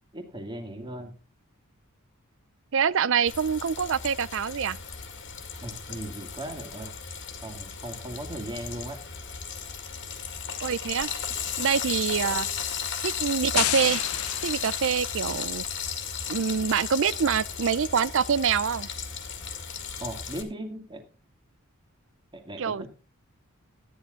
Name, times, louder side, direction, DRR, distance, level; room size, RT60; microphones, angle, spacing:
voice 1, 0.1-1.1 5.6-6.9 7.4-9.0 20.0-21.0 22.3-22.9, right 1 dB, 20° right, 2.2 m, -37 dB
voice 2, 2.7-4.8 10.6-11.1 11.6-12.5 13.0-14.0 14.4-15.6 16.3-18.9 22.6-22.9, right 7 dB, 60° right, 0.5 m, -25 dB
Frying (food), 3.3-20.4, left 7 dB, 55° left, 2.1 m, -35 dB
sound 1, 13.6-15.4, left 14 dB, 75° left, 0.5 m, -31 dB
13.0 x 10.0 x 3.8 m
head